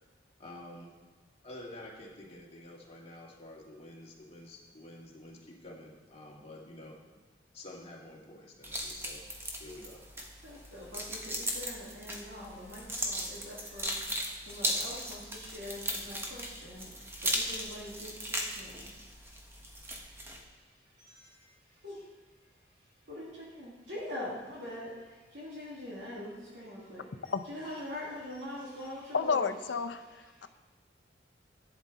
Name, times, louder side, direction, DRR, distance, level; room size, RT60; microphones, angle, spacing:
voice 1, 0.4-0.9 1.4-7.0 7.5-9.2 9.6-10.0, left 1 dB, 35° left, -3 dB, 2.0 m, -49 dB
sound 1, 8.6-20.4, equal, 15° right, 1.2 m, -37 dB
voice 2, 10.3-16.9 17.2-18.9 19.2-19.4 21.0-22.1 22.8-29.7 30.0-30.5, left 1 dB, 75° right, -6 dB, 2.6 m, -44 dB
voice 3, 29.1-30.0, left 5 dB, 85° left, 10 dB, 0.6 m, -30 dB
11.0 x 8.7 x 4.1 m, 1.3 s
head